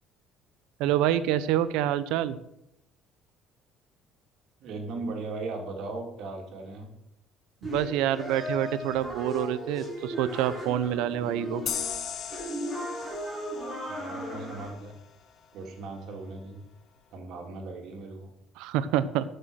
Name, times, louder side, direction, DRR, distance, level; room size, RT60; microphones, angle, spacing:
voice 1, 0.8-2.4 7.6-11.6 18.6-19.2, right 11 dB, 90° right, 15 dB, 0.7 m, -27 dB
voice 2, 4.6-6.9 13.9-15.0 15.5-16.6 17.1-18.3, right 3 dB, 50° right, 2 dB, 2.6 m, -38 dB
sound 1, 7.6-14.7, equal, ahead, 3.6 m, -36 dB
sound 2, 11.7-15.0, left 8 dB, 45° left, 1.1 m, -37 dB
12.5 x 6.7 x 6.2 m, 0.82 s
cardioid pair, 175°, 0 cm